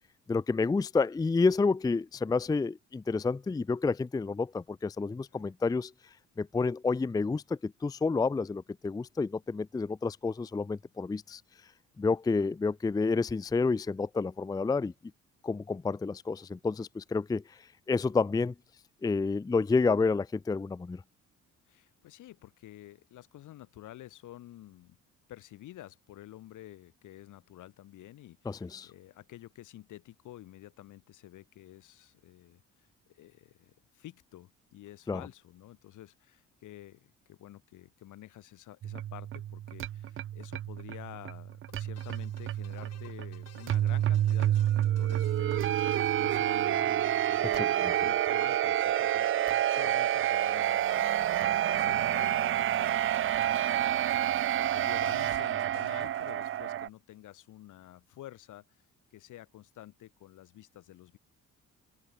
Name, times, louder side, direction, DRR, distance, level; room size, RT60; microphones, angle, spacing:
voice 1, 0.3-5.9 6.4-11.4 12.0-14.9 15.4-18.5 19.0-21.0 28.5-28.9 35.1-35.2 47.5-47.9, left 4 dB, 15° left, 0.4 m, -29 dB
voice 2, 21.7-25.0 25.3-54.1 54.6-58.6 59.1-61.2, left 14 dB, 85° left, 4.6 m, -50 dB
sound 1, 38.8-56.9, right 12 dB, 45° right, 0.4 m, -29 dB
sound 2, 41.7-47.5 48.8-49.6 49.9-50.0 50.1-50.2 52.5-57.0, left 9 dB, 55° left, 2.9 m, -59 dB
open air
cardioid pair, 90°, 30 cm